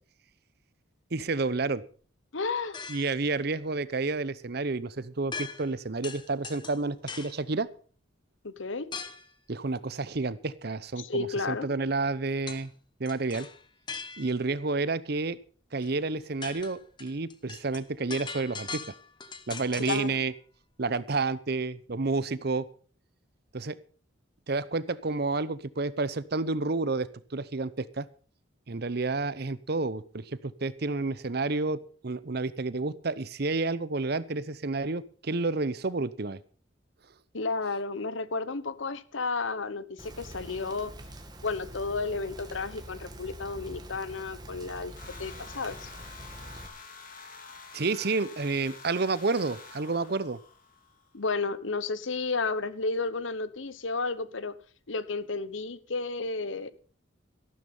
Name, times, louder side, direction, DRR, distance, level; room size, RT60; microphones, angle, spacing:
voice 1, 1.1-1.8 2.9-7.7 9.5-12.7 13.0-13.5 14.2-15.4 15.7-18.8 19.5-20.3 20.8-22.7 23.5-23.8 24.5-28.1 28.7-36.4 47.7-50.4, right 3 dB, 55° right, 18 dB, 0.7 m, -30 dB
voice 2, 2.3-2.8 8.4-8.9 11.0-11.7 19.9-20.2 37.3-40.9 41.4-44.9 45.2-45.9 51.1-54.6 54.9-56.7, left 3 dB, 75° left, 16 dB, 1.0 m, -32 dB
sound 1, 2.7-3.2 5.3-5.8 6.0-7.4 8.9-9.3 12.5-12.7 13.0-14.5 15.8-15.9 16.2-20.1, left 5 dB, 25° left, 1.1 m, -40 dB
Rain, 40.0-46.7, right 1 dB, 20° right, 1.9 m, -45 dB
sound 2, 45.0-51.1, left 4 dB, 45° left, 2.6 m, -48 dB
14.0 x 12.0 x 5.5 m, 0.41 s
head